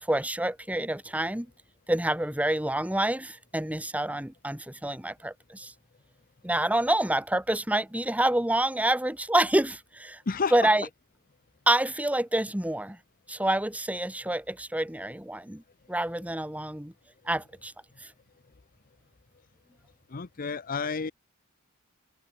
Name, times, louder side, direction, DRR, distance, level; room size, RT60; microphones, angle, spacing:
voice 1, 0.0-1.5 1.9-5.7 6.4-10.2 10.5-10.8 11.7-13.0 13.3-15.6 15.9-16.9 17.2-17.7 18.0-18.1, right 1 dB, 5° right, 1.5 m, -27 dB
voice 2, 20.1-21.1, left 5 dB, 40° left, 0.7 m, -30 dB
head